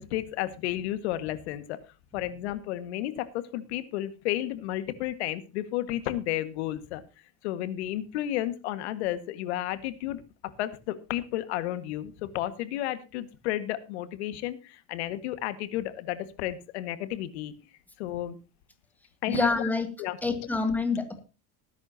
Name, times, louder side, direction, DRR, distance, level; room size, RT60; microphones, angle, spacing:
voice 1, 0.0-1.8 2.1-7.0 7.4-17.5 18.0-18.4 19.2-19.7 20.0-20.2, left 14 dB, 85° left, 12 dB, 1.8 m, -32 dB
voice 2, 19.3-19.9 20.2-21.2, left 3 dB, 5° left, 7 dB, 2.4 m, -27 dB
19.5 x 10.5 x 2.9 m, 0.30 s
supercardioid pair, 135°, 32 cm